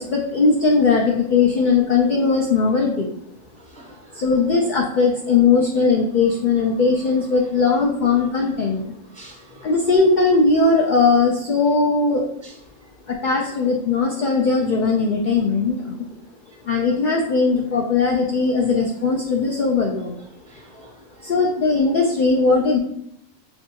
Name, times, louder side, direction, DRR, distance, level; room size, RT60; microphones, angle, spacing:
voice 1, 0.0-3.1 4.1-8.9 9.6-12.3 13.1-16.0 16.6-20.2 21.2-22.8, left 4 dB, 65° left, -1 dB, 0.5 m, -19 dB
voice 2, 3.6-4.2 9.1-9.7 12.4-12.6 20.5-21.3, right 2 dB, 10° left, -2 dB, 0.6 m, -47 dB
6.6 x 2.3 x 2.8 m, 0.76 s
omnidirectional pair, 1.4 m